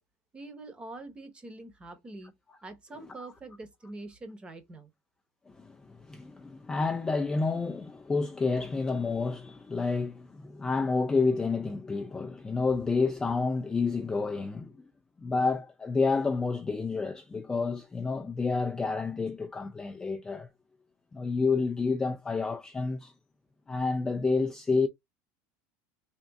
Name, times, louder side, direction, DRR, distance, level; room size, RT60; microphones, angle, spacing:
voice 1, 0.3-2.3 2.6-4.9, right 2 dB, 15° right, 0.9 m, -44 dB
voice 2, 5.5-14.8 15.2-20.5 21.1-23.1 23.7-24.9, left 4 dB, 10° left, 0.4 m, -29 dB
3.5 x 2.4 x 3.8 m
cardioid pair, 150°, 6 cm